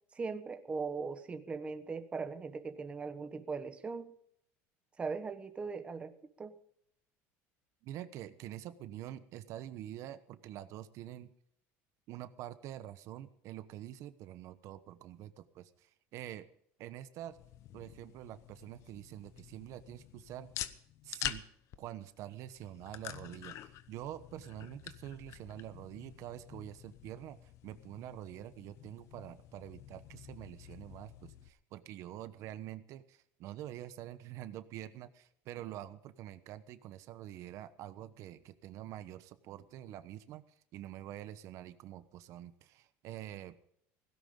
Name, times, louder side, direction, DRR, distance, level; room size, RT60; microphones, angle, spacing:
voice 1, 0.1-4.1 5.0-6.6, right 4 dB, 20° right, 9 dB, 1.1 m, -39 dB
voice 2, 7.8-11.3 12.1-16.5 16.8-17.4 17.7-20.5 21.0-21.4 21.8-40.4 40.7-43.5, right 12 dB, 50° right, 12 dB, 1.0 m, -46 dB
sound 1, 17.2-31.5, left 12 dB, 50° left, 1.0 m, -47 dB
17.0 x 16.0 x 3.8 m, 0.68 s
cardioid pair, 145°, 6 cm